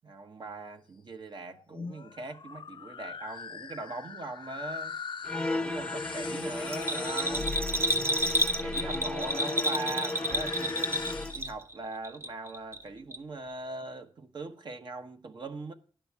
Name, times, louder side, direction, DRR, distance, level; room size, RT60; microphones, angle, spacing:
voice 1, 0.0-5.0 5.5-7.6 8.2-10.9 11.3-15.7, right 2 dB, 55° right, 1.1 m, -40 dB
sound 1, 1.6-11.6, left 6 dB, 60° left, 0.6 m, -41 dB
sound 2, 5.2-11.4, left 2 dB, 10° left, 0.7 m, -35 dB
Bell, 6.7-11.8 12.0-12.8 13.1-13.2, right 1 dB, 25° right, 0.8 m, -30 dB
10.5 x 5.2 x 7.3 m
wide cardioid pair, 90°, 9 cm